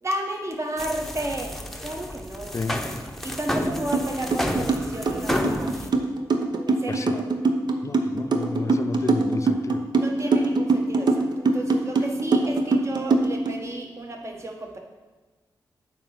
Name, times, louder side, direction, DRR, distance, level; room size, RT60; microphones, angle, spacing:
voice 1, 0.0-1.6 1.8-2.6 3.2-6.0 6.7-7.2 9.9-14.8, right 1 dB, 35° right, 1 dB, 1.1 m, -32 dB
sound 1, 0.8-5.9, equal, 5° left, 0.8 m, -30 dB
sound 2, 3.9-4.0 4.3-13.5, right 3 dB, 60° right, 0.7 m, -22 dB
voice 2, 7.8-9.9, left 3 dB, 35° left, 12 dB, 0.4 m, -31 dB
8.6 x 2.9 x 5.9 m, 1.2 s
supercardioid pair, 40°, 8 cm